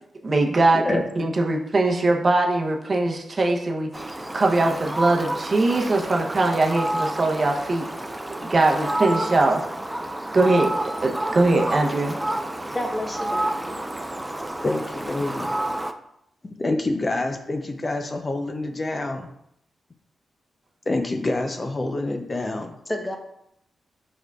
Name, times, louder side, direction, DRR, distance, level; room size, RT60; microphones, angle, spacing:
voice 1, 0.2-4.1 4.3-7.9 8.4-9.6 10.3-10.7 11.0-12.2, right 2 dB, 45° right, 1 dB, 0.7 m, -21 dB
Fowl, 3.9-15.9, right 1 dB, 15° right, 0.4 m, -29 dB
voice 2, 8.8-9.3 12.7-13.8 22.9-23.2, left 1 dB, 20° left, 3 dB, 0.9 m, -31 dB
voice 3, 14.6-15.5 16.6-19.3 20.9-22.8, left 2 dB, 40° left, 5 dB, 0.5 m, -27 dB
4.6 x 4.6 x 2.3 m, 0.77 s
supercardioid pair, 50°, 0 cm